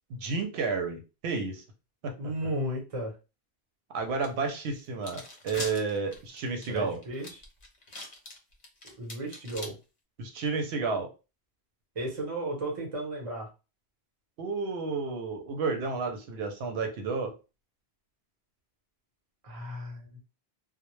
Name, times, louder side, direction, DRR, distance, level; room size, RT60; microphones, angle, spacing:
voice 1, 0.1-1.6 2.0-2.1 3.9-7.0 10.2-11.1 14.4-17.4, right 4 dB, 85° right, 4 dB, 0.8 m, -31 dB
voice 2, 2.2-3.1 6.7-7.3 9.0-9.7 11.9-13.5 19.4-20.2, right 1 dB, 35° right, -1 dB, 0.8 m, -34 dB
sound 1, 4.2-4.3 4.8-9.7, left 2 dB, 45° left, 0.7 m, -42 dB
2.1 x 2.0 x 3.0 m, 0.30 s
omnidirectional pair, 1.0 m